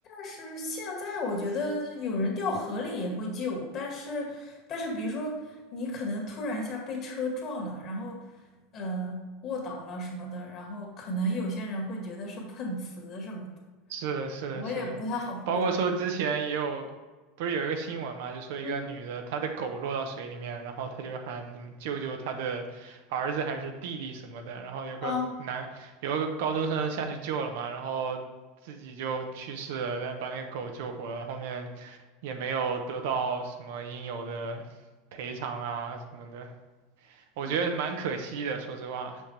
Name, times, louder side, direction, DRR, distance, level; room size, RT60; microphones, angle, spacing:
voice 1, 0.1-5.4 5.7-8.2 8.7-13.5 14.6-15.7 18.6-18.8 25.0-25.3 37.4-37.8, left 1 dB, 45° left, 0 dB, 2.0 m, -33 dB
voice 2, 13.9-15.0 15.5-16.9 17.4-25.1 25.4-28.2 28.6-34.6 35.1-36.5 37.2-39.2, right 5 dB, 75° right, 5 dB, 0.9 m, -33 dB
6.3 x 5.9 x 3.3 m, 1.3 s
supercardioid pair, 125°, 0 cm